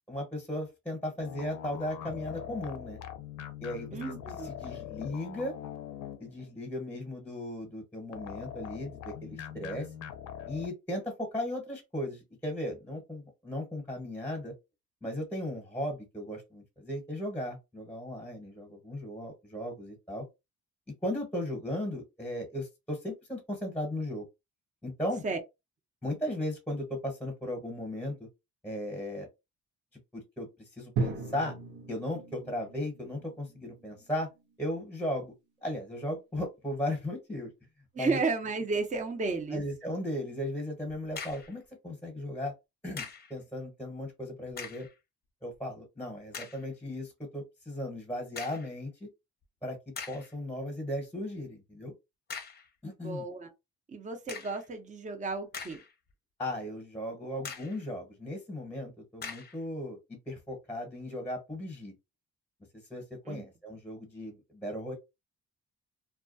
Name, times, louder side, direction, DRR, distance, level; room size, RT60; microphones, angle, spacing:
voice 1, 0.1-3.0 3.6-4.0 4.4-5.5 6.2-9.9 10.5-14.5 15.0-20.2 21.0-24.3 24.8-25.2 26.0-28.2 28.6-29.3 30.1-31.5 31.9-34.3 34.6-35.3 35.6-37.5 38.0-38.2 39.5-42.5 42.8-44.9 45.4-49.1 49.6-49.8 50.1-51.9 52.8-53.2 56.4-61.9 62.9-64.9, left 1 dB, 5° left, 1.0 m, -36 dB
sound 1, 1.2-6.5 8.1-10.7, left 10 dB, 85° left, 0.5 m, -42 dB
voice 2, 3.9-4.5 25.2-25.4 37.9-39.6 53.0-53.5 53.9-55.8 63.3-63.4, right 3 dB, 25° right, 0.6 m, -33 dB
Drum, 31.0-35.0, right 4 dB, 85° right, 0.8 m, -38 dB
sound 2, 41.1-41.6 43.0-43.3 44.5-44.9 45.5-45.6 46.3-46.7 48.4-48.7 49.4-49.5 50.0-50.3 52.3-52.7 54.3-54.7 55.3-56.1 56.5-56.6 57.4-57.8 59.2-59.6, left 5 dB, 35° left, 0.6 m, -42 dB
2.3 x 2.2 x 2.6 m
cardioid pair, 90°, 30 cm